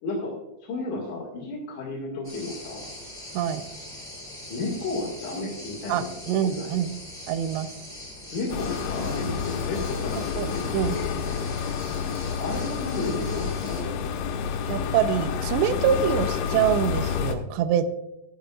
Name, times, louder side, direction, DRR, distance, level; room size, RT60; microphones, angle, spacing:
voice 1, 0.0-2.9 4.5-6.1 6.5-6.8 8.3-11.6 12.4-14.4, left 2 dB, 50° left, -5 dB, 2.8 m, -33 dB
sound 1, 2.2-13.8, left 1 dB, 5° left, 2.3 m, -42 dB
voice 2, 3.3-3.7 5.9-6.9 7.3-7.7 10.4-10.5 10.7-11.0 14.7-17.9, right 9 dB, 80° right, 10 dB, 2.8 m, -25 dB
sound 2, 8.5-17.3, left 7 dB, 85° left, 3.3 m, -29 dB
14.5 x 11.5 x 2.4 m, 0.92 s
omnidirectional pair, 5.3 m